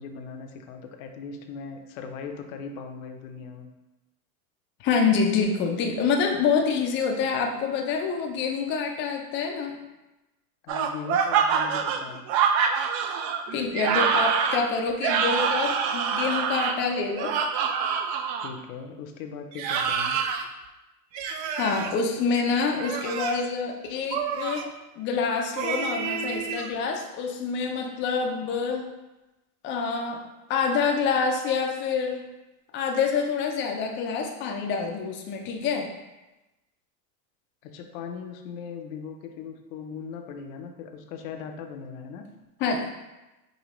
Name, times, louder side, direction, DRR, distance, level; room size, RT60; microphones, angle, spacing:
voice 1, 0.0-3.7 10.6-12.3 18.4-20.2 37.6-42.2, left 6 dB, 55° left, 5 dB, 0.7 m, -39 dB
voice 2, 4.8-9.8 13.5-17.3 21.6-24.7 24.9-28.8 29.6-30.2 30.5-32.2 32.7-35.9 42.6-42.9, left 5 dB, 25° left, 2 dB, 0.4 m, -26 dB
sound 1, 10.7-18.5 19.5-20.5 21.1-21.9 22.7-23.5 24.1-24.7 25.6-26.7, right 6 dB, 45° right, 0.4 m, -26 dB
5.2 x 2.7 x 3.0 m, 1.0 s
supercardioid pair, 125°, 48 cm